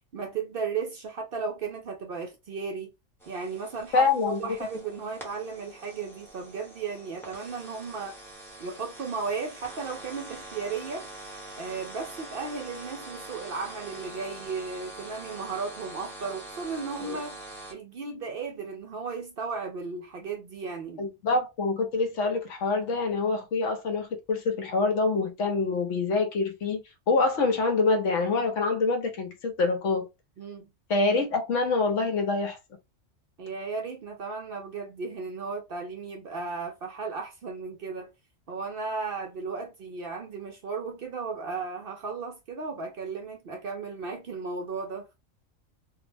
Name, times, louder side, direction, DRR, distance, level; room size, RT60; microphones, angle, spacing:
voice 1, 0.1-2.9 3.3-8.1 8.6-11.1 11.6-17.4 17.7-21.1 30.4-30.7 33.4-38.1 38.5-45.0, right 4 dB, 60° right, 0.7 m, -35 dB
sound 1, 3.2-17.7, right 2 dB, ahead, 0.7 m, -44 dB
voice 2, 3.9-4.6 17.0-17.2 21.0-30.1 30.9-32.6, left 3 dB, 75° left, 1.0 m, -26 dB
2.6 x 2.0 x 3.2 m
omnidirectional pair, 1.3 m